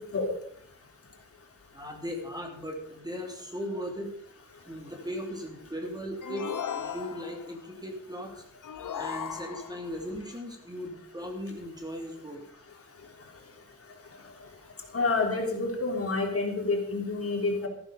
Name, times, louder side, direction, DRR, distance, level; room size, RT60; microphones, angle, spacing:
voice 1, 1.7-4.1 4.6-8.4 8.9-12.4, equal, 10° right, 1 dB, 3.0 m, -38 dB
sound 1, 6.2-7.5 8.6-9.9, left 8 dB, 65° left, 1.2 m, -36 dB
voice 2, 14.9-17.7, left 3 dB, 45° left, 2 dB, 3.5 m, -28 dB
14.0 x 11.5 x 5.3 m, 0.66 s
wide cardioid pair, 135°, 33 cm